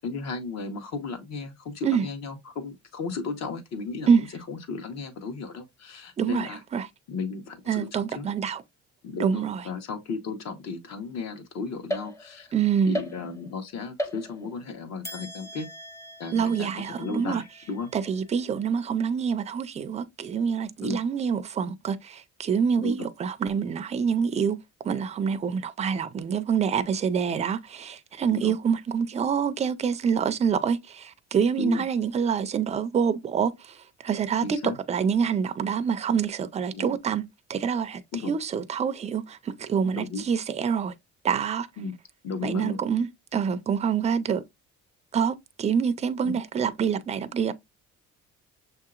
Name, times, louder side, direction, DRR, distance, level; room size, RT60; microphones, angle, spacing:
voice 1, 0.0-4.1 4.5-6.6 7.1-8.3 9.0-12.5 12.9-15.7 16.2-17.9 20.8-21.0 22.8-23.1 28.3-28.5 31.6-31.8 34.4-34.8 36.7-37.0 38.1-38.3 39.9-40.2 41.8-41.9 42.2-42.8 46.2-46.4, left 4 dB, 65° left, 1.2 m, -34 dB
voice 2, 6.2-6.9 7.7-8.6 9.2-9.6 12.5-13.0 16.3-17.4 17.9-24.6 24.8-33.5 34.0-37.2 37.5-40.9 41.2-41.7 42.4-44.4 45.1-47.5, right 7 dB, 25° right, 0.4 m, -26 dB
sound 1, 11.9-12.5 12.9-13.6 14.0-14.6 15.0-18.5, equal, 10° left, 0.7 m, -38 dB
6.7 x 2.8 x 2.4 m
cardioid pair, 150°, 30 cm